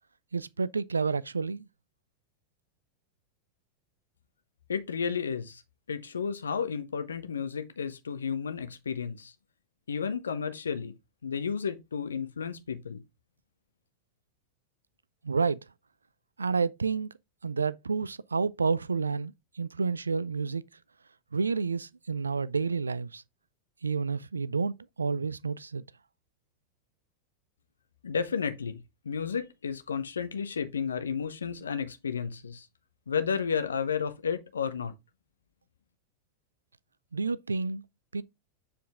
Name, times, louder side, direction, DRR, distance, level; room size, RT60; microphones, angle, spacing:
voice 1, 0.3-1.7 15.2-15.6 16.4-17.1 17.4-20.6 21.3-23.2 23.8-25.8 37.1-37.8 38.1-38.2, right 4 dB, 75° right, 0.3 m, -30 dB
voice 2, 4.7-5.6 5.9-9.3 9.9-10.9 11.2-13.0 28.0-28.8 29.0-32.7 33.1-34.9, left 6 dB, 70° left, 0.8 m, -32 dB
7.3 x 4.3 x 3.4 m
figure-of-eight pair, 90°, 0 cm